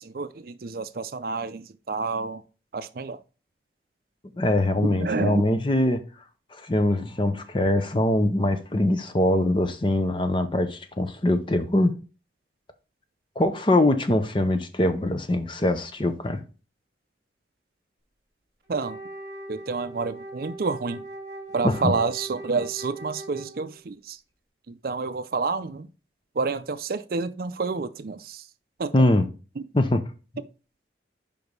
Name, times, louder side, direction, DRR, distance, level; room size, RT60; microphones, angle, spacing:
voice 1, 0.0-2.4 2.7-3.2 4.8-5.4 18.7-19.0 19.5-21.0 21.5-24.2 24.7-25.9 26.4-28.4 28.8-28.9 29.6-29.7, right 4 dB, 50° right, 0.5 m, -29 dB
voice 2, 4.4-6.0 6.6-11.9 13.4-16.4 21.6-21.9 28.9-29.3 29.7-30.0, left 1 dB, 25° left, 0.6 m, -23 dB
Wind instrument woodwind instrument, 18.7-23.9, right 2 dB, 20° right, 2.6 m, -40 dB
5.3 x 4.9 x 5.3 m
head